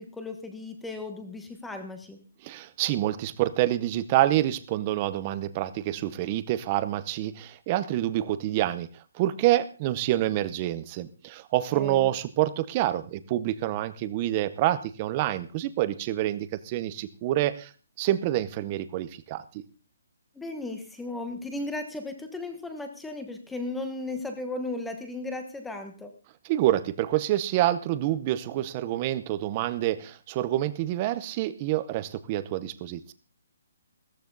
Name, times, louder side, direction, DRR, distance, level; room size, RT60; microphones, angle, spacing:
voice 1, 0.0-2.2 11.7-12.1 20.3-26.1, left 2 dB, 5° left, 6 dB, 1.2 m, -36 dB
voice 2, 2.4-17.7 18.0-19.6 26.4-33.1, right 14 dB, 20° right, 14 dB, 0.8 m, -27 dB
15.0 x 14.5 x 4.0 m, 0.36 s
hypercardioid pair, 180°, 0 cm